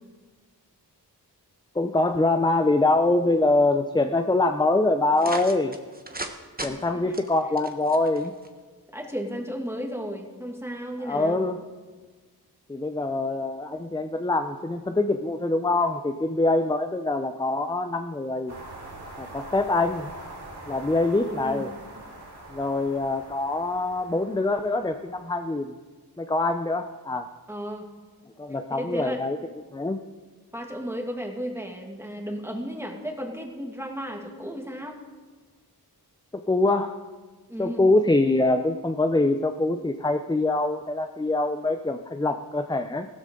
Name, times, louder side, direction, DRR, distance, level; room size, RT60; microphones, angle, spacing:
voice 1, 1.7-5.7 6.6-8.3 11.0-11.7 12.7-18.5 19.2-20.1 20.7-21.7 22.5-25.7 26.2-27.2 28.4-29.4 29.7-30.0 36.5-37.0 37.6-43.1, left 2 dB, 10° left, 7 dB, 0.6 m, -24 dB
sound 1, 5.2-6.3 6.6-6.7 7.1-8.5, right 2 dB, 20° right, 1.2 m, -35 dB
voice 2, 6.6-7.0 8.9-11.5 21.3-21.6 27.5-27.9 28.7-29.2 30.5-35.0 37.5-37.8, equal, 5° right, 1 dB, 2.2 m, -34 dB
sound 2, 18.5-25.4, right 2 dB, 75° right, 3.9 m, -43 dB
15.5 x 13.0 x 3.8 m, 1.4 s
wide cardioid pair, 55°, 39 cm